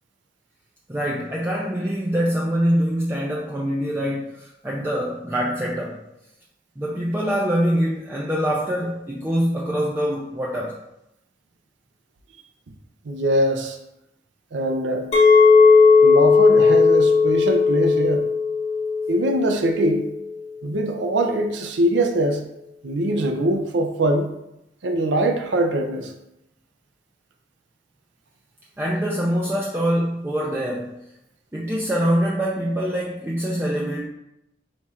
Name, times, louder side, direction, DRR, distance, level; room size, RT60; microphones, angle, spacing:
voice 1, 0.9-6.0 6.8-10.8 28.8-31.0 31.5-34.1, equal, 10° right, -4 dB, 0.4 m, -24 dB
voice 2, 13.1-13.8 14.5-15.1 16.0-18.3 19.1-20.1 20.6-22.4 22.8-24.3 24.8-26.1, right 1 dB, 80° right, 4 dB, 0.5 m, -22 dB
Chink clink, 15.1-20.3, left 4 dB, 35° left, 0.6 m, -16 dB
4.3 x 2.4 x 4.3 m, 0.86 s
head